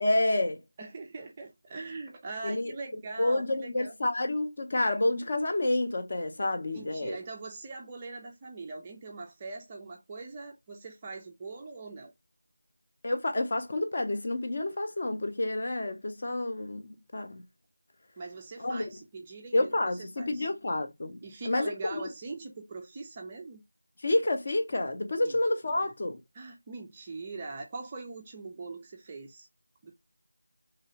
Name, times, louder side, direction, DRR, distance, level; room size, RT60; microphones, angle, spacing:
voice 1, 0.0-0.6 2.4-2.7 3.2-7.2 13.0-17.4 18.6-18.8 19.5-21.2 21.5-22.0 24.0-26.2, left 2 dB, 35° left, 0.5 m, -29 dB
voice 2, 0.8-3.9 6.5-12.1 18.2-20.5 21.2-23.6 25.2-25.4 25.8-25.9 26.3-29.5 29.8-29.9, right 3 dB, 15° right, 0.3 m, -42 dB
2.9 x 2.9 x 2.7 m
figure-of-eight pair, 175°, 0 cm